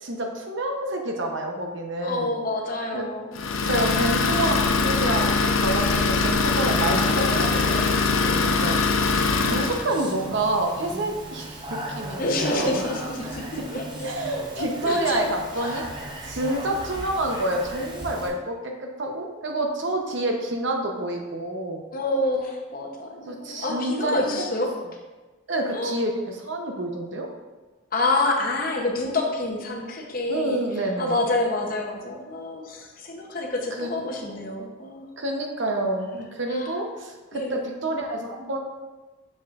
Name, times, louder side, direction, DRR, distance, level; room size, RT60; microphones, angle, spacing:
voice 1, 0.0-2.3 2.9-3.0 3.6-9.1 9.4-12.8 14.0-21.8 23.2-24.3 25.5-26.1 26.4-27.3 30.3-31.2 33.8-33.9 34.2-34.4 35.2-38.6, right 1 dB, 65° right, 2 dB, 0.8 m, -28 dB
voice 2, 2.0-3.7 9.3-9.4 12.2-15.8 21.9-24.7 25.7-25.9 27.9-35.1 36.5-36.7 37.3-37.6, left 2 dB, 45° left, 1 dB, 0.8 m, -28 dB
Idling, 3.4-9.9, left 4 dB, 80° left, 0.6 m, -22 dB
Speech, 6.4-18.3, right 1 dB, 20° right, 0.7 m, -37 dB
6.6 x 6.0 x 2.5 m, 1.2 s
head